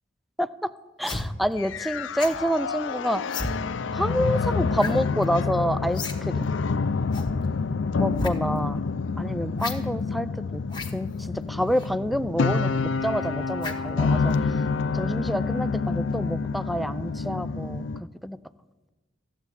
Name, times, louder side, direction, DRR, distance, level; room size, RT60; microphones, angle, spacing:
voice 1, 0.4-0.7 1.0-3.2 3.9-6.5 8.0-8.8 9.2-10.6 10.9-14.3 14.9-17.8 18.2-18.4, equal, ahead, 14 dB, 0.4 m, -28 dB
sound 1, 1.0-1.3 2.2-2.4 3.3-3.5 4.8-5.0 5.2-5.3 5.9-6.2 6.4-6.5 7.1-7.3 8.1-8.3 9.6-9.8 10.7-10.9 11.7-11.9 13.6-13.9 14.3-14.5, left 3 dB, 25° left, 1.3 m, -33 dB
sound 2, 1.6-18.0, left 4 dB, 75° left, 0.5 m, -28 dB
14.5 x 8.2 x 9.7 m, 1.2 s
head